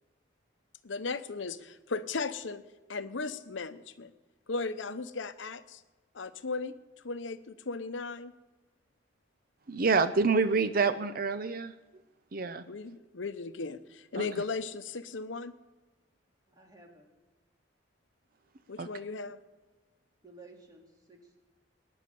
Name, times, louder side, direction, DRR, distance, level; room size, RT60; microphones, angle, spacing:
voice 1, 0.8-2.6 2.9-4.1 4.5-5.8 6.1-6.7 7.0-8.3 12.7-15.5 18.7-19.4, left 4 dB, 90° left, 12 dB, 0.8 m, -36 dB
voice 2, 9.7-11.7 12.3-12.6 14.2-14.3 18.8-18.9, right 4 dB, 50° right, 11 dB, 0.6 m, -27 dB
voice 3, 16.5-17.1 20.2-21.4, right 2 dB, 20° right, 2 dB, 2.4 m, -54 dB
19.0 x 10.5 x 6.8 m, 1.2 s
head